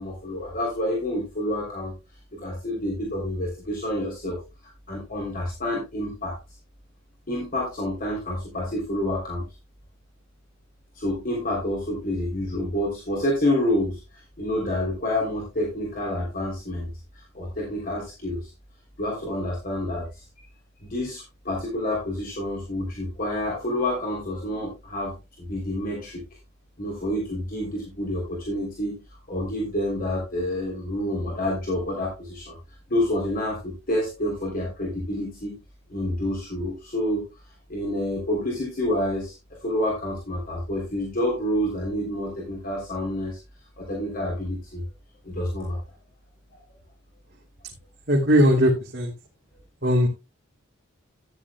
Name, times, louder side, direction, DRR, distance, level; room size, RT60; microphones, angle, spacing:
voice 1, 0.0-1.9 2.4-4.4 4.9-6.4 7.3-9.4 11.0-16.9 17.1-18.5 19.0-20.2 20.8-26.2 26.8-32.5 32.9-35.6 35.9-37.3 37.7-43.4 43.8-44.9 45.2-45.8, left 1 dB, 45° left, -2 dB, 3.5 m, -28 dB
voice 2, 48.1-49.1 49.8-50.1, equal, 55° right, -2 dB, 2.5 m, -19 dB
14.0 x 10.0 x 2.3 m, 0.25 s
head